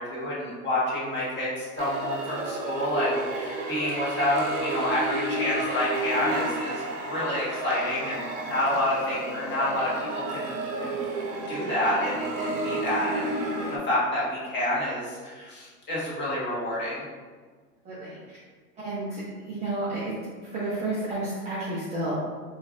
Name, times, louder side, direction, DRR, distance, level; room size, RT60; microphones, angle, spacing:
voice 1, 0.0-11.0 11.5-13.4 13.7-17.1, left 1 dB, 25° left, -7 dB, 1.2 m, -29 dB
sound 1, 1.8-13.8, right 2 dB, 45° right, 0.8 m, -31 dB
voice 2, 17.8-18.2 18.8-20.1 20.5-22.2, right 2 dB, 15° right, -11 dB, 0.5 m, -31 dB
4.4 x 2.4 x 2.4 m, 1.5 s
hypercardioid pair, 125°, 47 cm